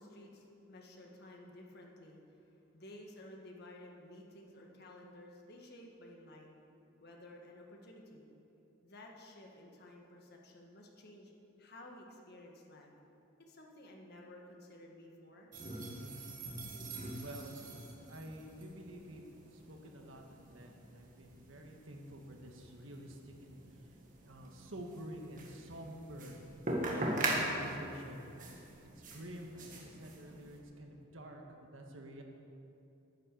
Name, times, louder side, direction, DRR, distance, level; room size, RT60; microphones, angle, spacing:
voice 1, 0.0-2.2 2.7-6.5 7.0-8.3 8.8-11.3 11.6-12.9 13.5-15.5, left 1 dB, 50° left, 1 dB, 1.6 m, -54 dB
sound 1, 15.5-30.6, right 1 dB, 40° right, 1.6 m, -42 dB
voice 2, 15.9-16.3 17.2-17.6 18.0-23.6 24.2-26.4 26.9-28.3 29.0-32.2, right 1 dB, 65° right, 2 dB, 1.5 m, -49 dB
10.5 x 9.9 x 6.8 m, 2.9 s
head